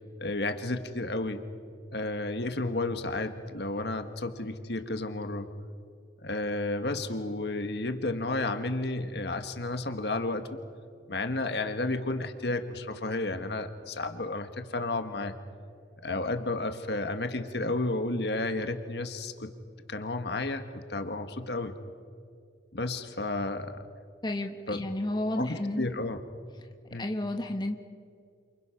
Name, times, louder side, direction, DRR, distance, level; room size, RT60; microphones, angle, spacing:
voice 1, 0.2-1.4 1.9-5.5 6.2-10.6 11.1-15.3 16.0-19.5 19.9-21.7 22.7-23.8 24.7-24.9 25.4-26.2 26.9-27.1, left 2 dB, 65° left, 7 dB, 1.6 m, -32 dB
voice 2, 24.2-25.9 27.0-27.8, left 1 dB, 25° left, 4 dB, 1.4 m, -31 dB
29.0 x 26.0 x 5.9 m, 2.2 s
head